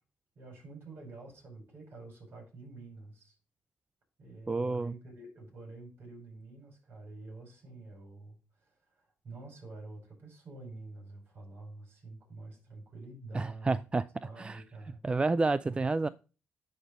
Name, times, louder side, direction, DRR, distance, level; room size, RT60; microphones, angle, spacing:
voice 1, 0.4-3.3 4.2-13.8 14.2-15.0 15.7-15.8 16.1-16.2, right 3 dB, 55° right, 5.1 m, -48 dB
voice 2, 4.5-4.9 13.3-14.1 14.4-14.6 15.0-16.1, right 3 dB, 25° right, 0.3 m, -29 dB
9.8 x 4.3 x 5.1 m
cardioid pair, 70°, 5 cm